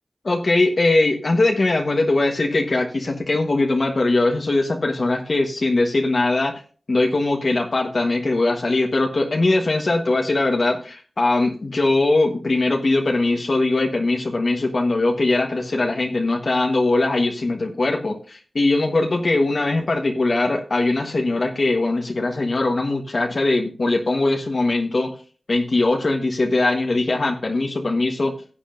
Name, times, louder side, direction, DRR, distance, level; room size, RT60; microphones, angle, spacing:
voice 1, 0.2-6.6 6.9-25.1 25.5-28.3, left 2 dB, 60° left, 2 dB, 1.3 m, -21 dB
16.0 x 8.3 x 2.6 m, 0.39 s
wide cardioid pair, 75°, 0 cm